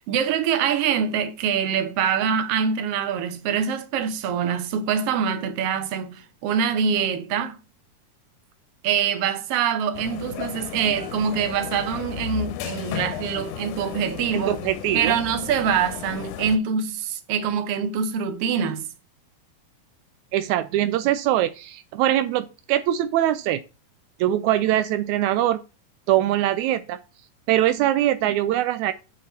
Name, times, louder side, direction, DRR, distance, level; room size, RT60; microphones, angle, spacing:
voice 1, 0.1-7.6 8.8-14.5 14.9-18.9, right 7 dB, 65° right, 1.6 m, -24 dB
sound 1, 9.9-16.6, left 10 dB, 75° left, 2.1 m, -34 dB
voice 2, 14.3-15.2 20.3-23.6 24.2-25.6 26.1-27.0 27.5-28.9, right 13 dB, 90° right, 1.6 m, -22 dB
8.4 x 5.7 x 4.4 m
omnidirectional pair, 3.9 m